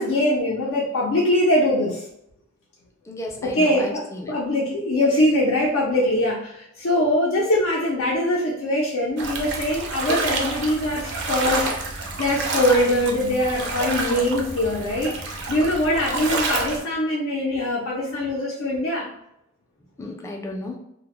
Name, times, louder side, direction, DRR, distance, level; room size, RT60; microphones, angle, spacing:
voice 1, 0.0-2.0 3.4-19.1, left 1 dB, 75° left, -3 dB, 0.5 m, -22 dB
voice 2, 3.1-4.4 20.0-20.8, left 1 dB, 15° left, 1 dB, 0.3 m, -34 dB
sound 1, 9.2-16.8, right 3 dB, 60° right, 0.4 m, -28 dB
2.1 x 2.0 x 2.9 m, 0.77 s
head